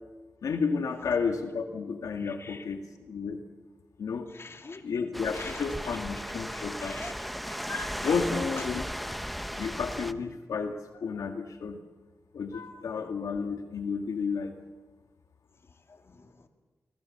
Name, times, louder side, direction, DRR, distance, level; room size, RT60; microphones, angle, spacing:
voice 1, 0.4-3.4 4.0-4.3 4.8-7.0 8.0-8.8 9.6-11.8 12.3-14.6, left 5 dB, 90° left, 5 dB, 1.8 m, -32 dB
voice 2, 2.2-2.6 4.3-4.8 5.3-5.6 6.5-7.1 7.5-8.0 15.9-16.5, left 3 dB, 50° left, 5 dB, 2.8 m, -43 dB
sound 1, 5.1-10.1, equal, ahead, 1.1 m, -36 dB
28.0 x 21.5 x 7.5 m, 1.3 s
cardioid pair, 70°, 6 cm